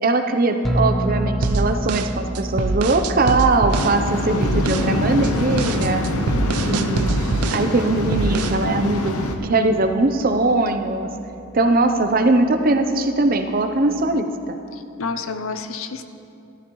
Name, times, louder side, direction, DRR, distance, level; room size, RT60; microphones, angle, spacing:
voice 1, 0.0-6.1 6.7-7.2 7.5-9.1 9.4-11.1 11.5-14.6, right 2 dB, 40° right, 7 dB, 0.6 m, -20 dB
sound 1, 0.6-14.1, right 1 dB, ahead, 0.7 m, -31 dB
sound 2, 1.4-4.0 4.4-4.9 5.2-7.7 8.1-8.6, right 4 dB, 85° right, 0.5 m, -25 dB
Waves surf, 3.7-9.4, left 2 dB, 90° left, 0.9 m, -24 dB
voice 2, 6.3-6.8 15.0-16.0, left 4 dB, 70° left, 9 dB, 0.6 m, -29 dB
14.5 x 13.5 x 3.1 m, 2.7 s
head